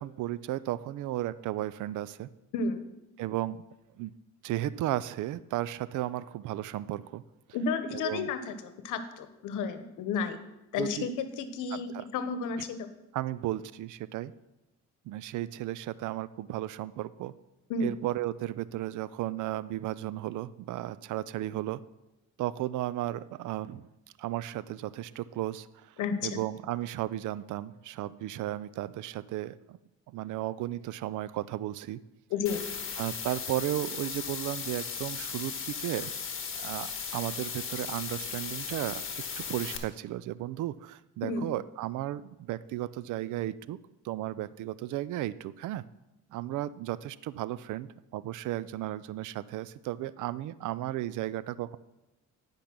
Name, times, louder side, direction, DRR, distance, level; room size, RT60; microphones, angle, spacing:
voice 1, 0.0-2.3 3.2-3.6 4.0-4.1 4.4-7.2 7.9-8.3 10.8-11.1 11.7-12.0 13.1-14.3 15.1-17.3 17.8-21.8 22.4-23.9 24.2-25.9 26.2-29.8 30.1-32.0 33.0-36.1 36.6-43.8 44.0-45.8 46.3-51.8, right 14 dB, 80° right, 18 dB, 0.5 m, -34 dB
voice 2, 2.5-2.8 7.5-10.4 10.7-12.9 17.7-17.9 26.0-26.4 32.3-32.6 41.2-41.5, left 5 dB, 90° left, 10 dB, 0.9 m, -32 dB
sound 1, 32.5-39.8, left 6 dB, 45° left, 1.3 m, -37 dB
10.5 x 5.2 x 6.0 m, 0.96 s
cardioid pair, 90°, 30 cm